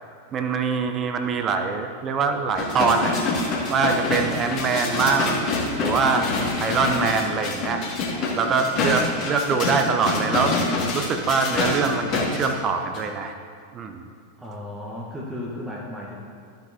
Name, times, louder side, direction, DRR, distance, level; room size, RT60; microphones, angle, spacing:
voice 1, 0.3-3.2 3.7-5.5 5.8-7.8 8.4-13.4 13.7-14.0, right 5 dB, 30° right, 5 dB, 0.7 m, -24 dB
sound 1, 2.5-12.5 12.9-13.0, left 3 dB, 40° left, 1.9 m, -26 dB
voice 2, 14.4-16.2, left 1 dB, 5° right, -4 dB, 1.1 m, -34 dB
13.0 x 7.7 x 2.8 m, 2.3 s
figure-of-eight pair, 90°, 0 cm